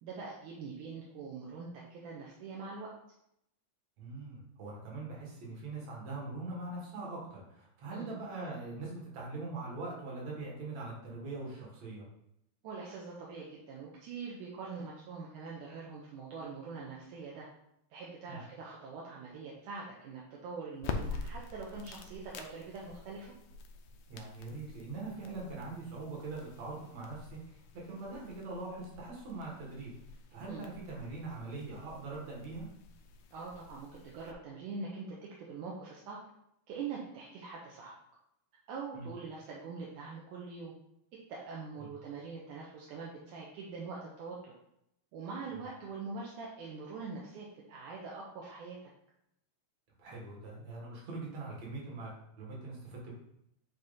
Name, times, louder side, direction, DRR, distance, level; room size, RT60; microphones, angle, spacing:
voice 1, 0.0-2.9 7.9-8.1 12.6-17.5 17.9-23.3 30.5-30.6 33.3-36.2 36.7-37.9 38.7-40.7 41.3-44.5 45.1-48.9, right 4 dB, 75° right, -4 dB, 2.3 m, -43 dB
voice 2, 4.0-12.0 18.3-18.4 24.1-29.9 30.3-32.7 38.9-39.1 41.8-41.9 50.0-53.1, right 3 dB, 55° right, -3 dB, 2.8 m, -42 dB
sound 1, 20.8-34.3, left 5 dB, 80° left, 1.7 m, -46 dB
8.4 x 2.9 x 4.1 m, 0.78 s
omnidirectional pair, 3.8 m